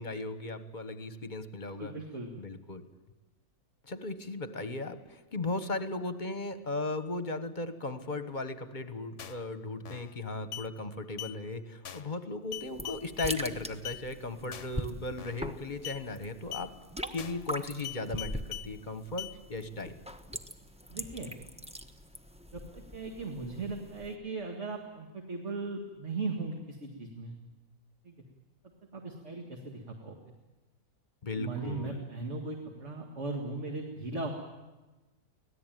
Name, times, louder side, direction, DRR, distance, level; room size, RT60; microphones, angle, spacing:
voice 1, 0.0-1.9 2.4-2.8 3.9-16.7 17.1-19.9 31.2-32.0, left 2 dB, 35° left, 10 dB, 1.3 m, -37 dB
voice 2, 1.6-2.3 20.9-21.3 22.5-22.6 22.9-27.4 28.0-28.1 28.9-30.2 31.3-34.3, right 3 dB, 50° right, 1 dB, 2.3 m, -38 dB
sound 1, 9.2-9.5 9.8-10.2 10.5-10.7 11.2-11.3 11.8-12.2 12.5-13.3 13.8-14.0 14.5-14.8 15.2-15.5 15.8-16.0 16.5-16.7 17.2-17.5 17.8-18.7 19.2-19.3, left 11 dB, 55° left, 1.2 m, -41 dB
sound 2, 12.6-24.2, equal, 5° right, 0.9 m, -42 dB
25.0 x 17.5 x 9.2 m, 1.2 s
omnidirectional pair, 1.6 m